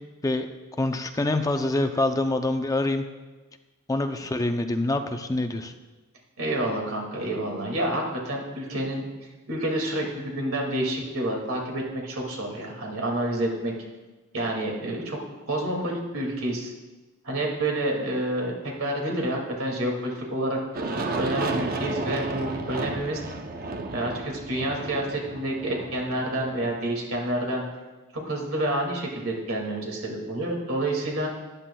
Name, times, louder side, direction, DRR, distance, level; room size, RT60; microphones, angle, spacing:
voice 1, 0.8-3.1 3.9-5.7, left 2 dB, 15° left, 7 dB, 0.5 m, -25 dB
voice 2, 6.4-9.1 9.5-13.7 14.3-15.2 15.5-16.7 17.2-20.6 21.2-23.2 23.9-27.6 28.1-31.3, right 1 dB, 70° right, 0 dB, 2.2 m, -28 dB
Aircraft, 20.7-27.4, right 2 dB, 45° right, 0.7 m, -32 dB
13.5 x 9.8 x 2.3 m, 1.2 s
head